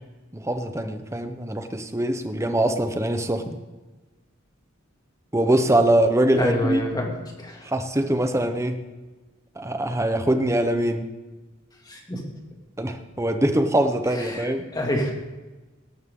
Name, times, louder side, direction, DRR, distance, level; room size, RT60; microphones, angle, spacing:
voice 1, 0.3-3.6 5.3-6.8 7.6-8.8 9.6-11.1 12.8-14.7, right 1 dB, 15° right, 7 dB, 1.0 m, -23 dB
voice 2, 6.4-7.1 7.4-7.7 11.8-12.2 14.1-15.1, left 1 dB, 20° left, 0 dB, 2.5 m, -27 dB
18.5 x 13.0 x 3.8 m, 1.2 s
head